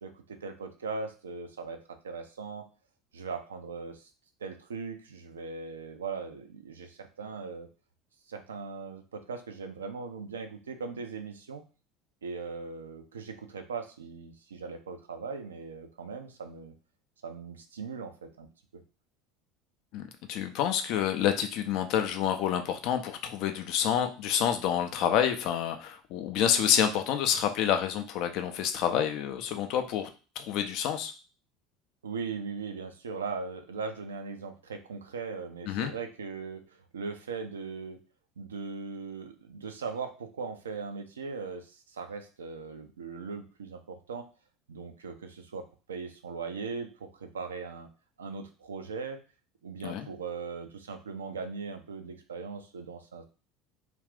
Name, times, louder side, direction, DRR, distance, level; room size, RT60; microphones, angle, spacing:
voice 1, 0.0-2.7 3.1-4.1 4.4-7.7 8.3-11.6 12.2-16.7 17.2-18.5 32.0-36.6 36.9-38.0 38.4-44.2 44.7-47.9 48.2-49.2 49.6-53.2, right 4 dB, 75° right, 7 dB, 0.4 m, -39 dB
voice 2, 19.9-30.1 30.4-31.1 35.7-35.9 49.8-50.1, left 9 dB, 55° left, 7 dB, 0.4 m, -28 dB
2.5 x 2.4 x 3.4 m, 0.35 s
figure-of-eight pair, 70°, 0 cm